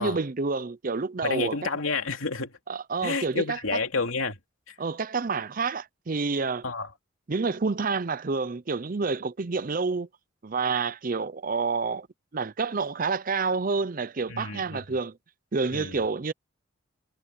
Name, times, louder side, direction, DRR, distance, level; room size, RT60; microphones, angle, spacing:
voice 1, 0.0-1.6 2.7-3.8 4.8-6.6 7.3-10.1 10.4-12.1 12.3-15.1 15.5-16.3, right 4 dB, 40° right, 0.6 m, -28 dB
voice 2, 1.2-2.6 3.0-4.4 4.7-4.8 6.6-6.9 14.3-14.9 15.7-16.0, left 4 dB, 85° left, 2.7 m, -30 dB
head